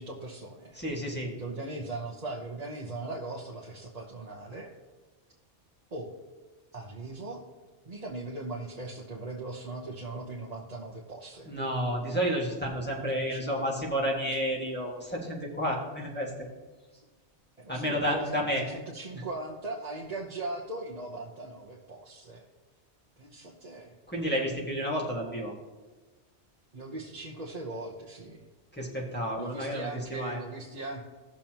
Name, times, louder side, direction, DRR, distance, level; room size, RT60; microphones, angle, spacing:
voice 1, 0.0-0.8 1.4-4.7 5.9-6.1 6.7-7.4 7.8-11.5 13.1-13.7 16.9-17.1 17.6-22.4 23.2-24.0 26.7-28.4 29.3-31.0, right 2 dB, 35° right, -3 dB, 1.1 m, -39 dB
voice 2, 0.7-1.3 11.5-16.3 17.7-18.6 24.1-25.5 28.7-30.4, equal, 10° left, -4 dB, 1.8 m, -31 dB
17.5 x 7.0 x 3.0 m, 1.3 s
omnidirectional pair, 1.2 m